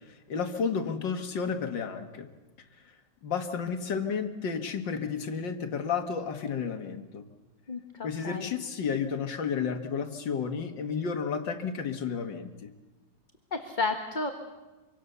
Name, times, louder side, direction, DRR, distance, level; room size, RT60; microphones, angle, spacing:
voice 1, 0.1-2.3 3.2-7.3 8.0-12.7, left 6 dB, 85° left, 7 dB, 2.4 m, -32 dB
voice 2, 7.7-8.5 13.5-14.3, left 3 dB, 25° left, 5 dB, 1.5 m, -32 dB
25.5 x 25.0 x 6.9 m, 1.2 s
omnidirectional pair, 1.9 m